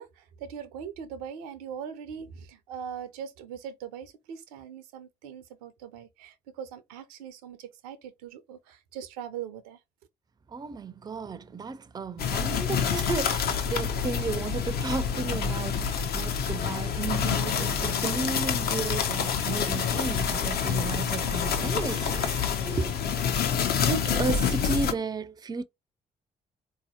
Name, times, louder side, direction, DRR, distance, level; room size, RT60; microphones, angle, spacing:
voice 1, 0.0-9.8, right 8 dB, 75° right, 0.5 m, -41 dB
voice 2, 10.5-22.9 23.9-25.6, right 4 dB, 20° right, 0.4 m, -33 dB
sound 1, 12.2-24.9, left 7 dB, 50° left, 0.6 m, -27 dB
3.9 x 2.7 x 2.8 m
figure-of-eight pair, 45°, 20 cm